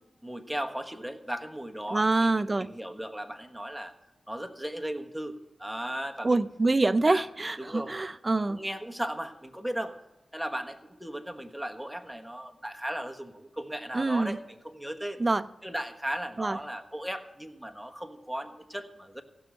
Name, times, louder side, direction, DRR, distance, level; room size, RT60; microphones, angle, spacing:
voice 1, 0.2-3.9 4.3-6.4 6.8-7.2 7.6-7.9 8.4-10.0 10.3-15.2 15.6-19.2, right 1 dB, ahead, 5 dB, 1.4 m, -36 dB
voice 2, 1.9-2.7 6.2-8.6 13.9-14.4 15.2-15.4 16.4-16.6, right 2 dB, 30° right, 15 dB, 0.5 m, -25 dB
16.0 x 6.4 x 7.6 m, 1.0 s
cardioid pair, 60°, 0 cm